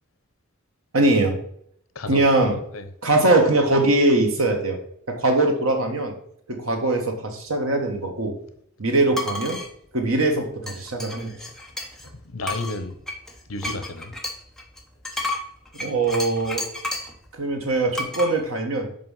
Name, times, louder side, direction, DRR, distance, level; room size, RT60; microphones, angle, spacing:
voice 1, 0.9-1.4 2.1-2.6 3.0-4.8 5.1-6.1 6.5-8.4 8.8-9.6 9.9-11.4 15.7-16.6 17.3-18.9, right 2 dB, 90° right, 1.4 m, -21 dB
voice 2, 1.9-2.9 12.1-13.0 13.5-14.2, left 2 dB, 75° left, 0.8 m, -32 dB
sound 1, 9.1-9.7 10.7-12.1 12.4-17.2 17.9-18.3, left 2 dB, ahead, 1.0 m, -31 dB
5.5 x 5.1 x 5.5 m
head